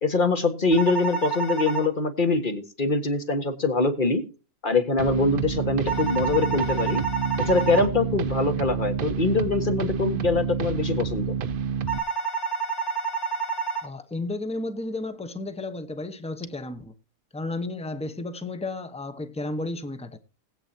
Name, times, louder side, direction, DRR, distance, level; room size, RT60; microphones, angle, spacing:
voice 1, 0.0-4.2 4.6-7.0 7.5-11.3, left 3 dB, 35° left, 1.8 m, -23 dB
sound 1, 0.7-1.9 5.9-7.9 11.9-13.9, right 6 dB, 50° left, 2.6 m, -29 dB
sound 2, 5.0-12.0, right 7 dB, 55° right, 0.6 m, -29 dB
voice 2, 13.8-16.9 17.3-20.2, left 2 dB, 5° left, 0.9 m, -33 dB
20.0 x 8.7 x 2.8 m
omnidirectional pair, 1.6 m